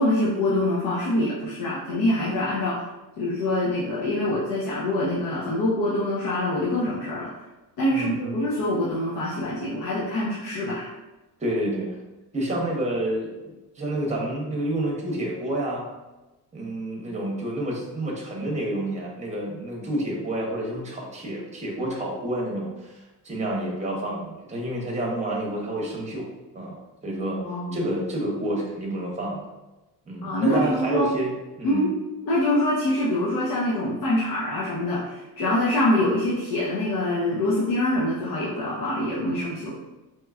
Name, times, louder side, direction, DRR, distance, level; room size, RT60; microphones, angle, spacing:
voice 1, 0.0-2.8 3.2-7.3 7.8-10.9 27.4-27.8 30.2-31.1 31.6-31.9 32.3-39.7, left 1 dB, 60° left, -6 dB, 0.8 m, -25 dB
voice 2, 7.9-8.4 11.4-11.9 12.3-15.9 16.5-26.3 26.5-27.4 27.7-29.4 30.1-31.3 31.6-31.8, right 1 dB, 15° right, -2 dB, 0.8 m, -29 dB
4.5 x 2.9 x 2.3 m, 1.1 s
cardioid pair, 155°, 40 cm